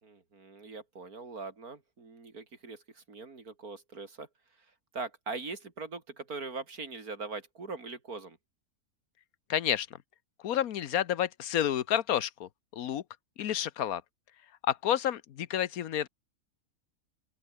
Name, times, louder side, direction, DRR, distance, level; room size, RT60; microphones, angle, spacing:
voice 1, 0.0-4.3 4.9-8.4, right 4 dB, 85° right, 3.8 m, -41 dB
voice 2, 9.5-9.9 10.4-13.0 13.4-14.0 14.6-16.1, left 10 dB, 75° left, 1.4 m, -30 dB
open air
omnidirectional pair, 1.5 m